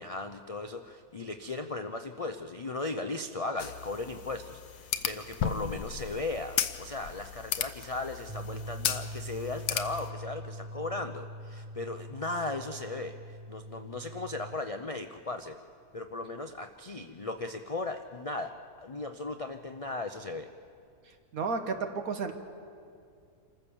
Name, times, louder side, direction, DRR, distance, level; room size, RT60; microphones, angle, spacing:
voice 1, 0.0-15.6 15.9-20.5, left 2 dB, 60° left, 7 dB, 0.3 m, -37 dB
sound 1, 3.6-10.1, left 9 dB, 75° left, 1.3 m, -35 dB
sound 2, 8.3-14.5, right 1 dB, 20° right, 1.2 m, -43 dB
voice 2, 21.1-22.3, right 4 dB, 65° right, 7 dB, 1.7 m, -33 dB
27.0 x 14.5 x 7.0 m, 2.4 s
omnidirectional pair, 1.7 m